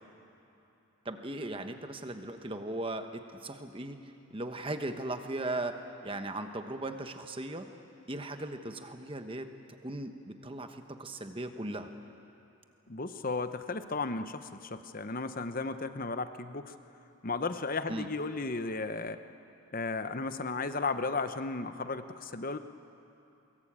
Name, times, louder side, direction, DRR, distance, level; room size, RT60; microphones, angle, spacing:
voice 1, 1.0-4.0 4.3-7.7 8.1-9.5 9.8-11.9 17.9-18.1, right 2 dB, 25° right, 7 dB, 1.1 m, -38 dB
voice 2, 12.9-16.7 17.2-19.2 19.7-22.6, left 3 dB, 40° left, 10 dB, 0.9 m, -34 dB
23.5 x 22.5 x 8.7 m, 2.9 s
head